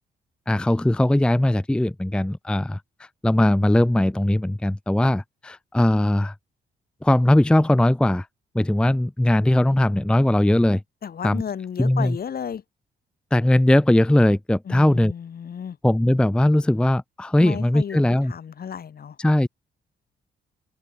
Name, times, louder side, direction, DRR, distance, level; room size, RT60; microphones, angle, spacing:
voice 1, 0.5-6.3 7.0-8.3 8.5-10.8 11.2-11.4 11.8-12.2 13.3-15.1 15.8-18.3 19.2-19.5, left 1 dB, 5° left, 0.6 m, -19 dB
voice 2, 11.0-12.6 14.6-15.8 17.4-18.0 18.3-19.2, left 7 dB, 55° left, 2.8 m, -33 dB
open air
cardioid pair, 110°, 19 cm